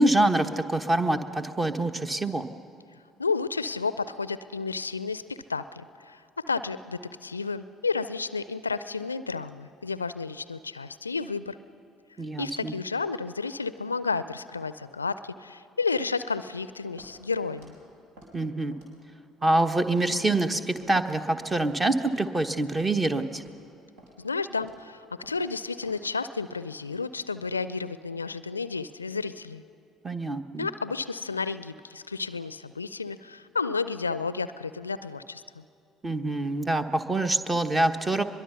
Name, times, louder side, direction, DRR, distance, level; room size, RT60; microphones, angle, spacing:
voice 1, 0.0-2.5 12.2-12.7 18.3-18.7 19.4-23.4 30.0-30.7 36.0-38.2, right 2 dB, 20° right, 9 dB, 1.2 m, -25 dB
voice 2, 3.2-11.6 12.4-17.8 24.2-29.6 30.6-35.6, left 4 dB, 85° left, 15 dB, 0.4 m, -32 dB
Walk footsteps, 17.0-17.2 17.6-17.7 18.2-18.3 18.7-19.0 19.4-19.6 20.1-20.2 20.8-21.0 21.4-21.6 22.1-22.2 22.7-22.9 23.3-23.6 24.0-24.1 24.6-24.8 25.2-25.4 25.8-26.0, right 1 dB, 70° right, 5.2 m, -51 dB
23.0 x 22.0 x 5.8 m, 2.5 s
figure-of-eight pair, 55°, 0 cm